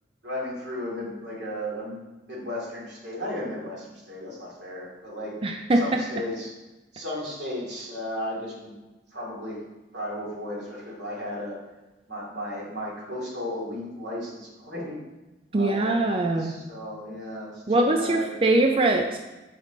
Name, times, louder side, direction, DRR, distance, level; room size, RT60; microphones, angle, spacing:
voice 1, 0.2-2.0 2.2-5.4 5.7-6.5 6.9-8.8 9.1-9.6 9.9-11.6 12.1-15.0 15.5-16.1 16.4-18.3, left 1 dB, 85° right, -4 dB, 2.5 m, -34 dB
voice 2, 5.4-6.0 15.5-16.6 17.7-19.2, right 2 dB, 30° right, 4 dB, 0.4 m, -22 dB
7.6 x 5.2 x 3.9 m, 1.1 s
head